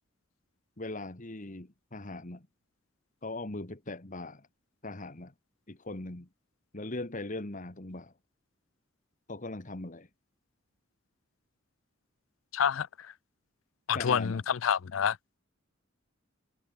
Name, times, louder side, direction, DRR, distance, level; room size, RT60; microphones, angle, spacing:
voice 1, 0.8-2.5 3.2-4.5 4.8-5.3 5.7-6.3 6.7-8.1 9.3-10.1 13.9-14.4, left 2 dB, 40° left, 1.9 m, -40 dB
voice 2, 12.5-13.1 13.9-15.2, left 8 dB, 90° left, 0.5 m, -28 dB
head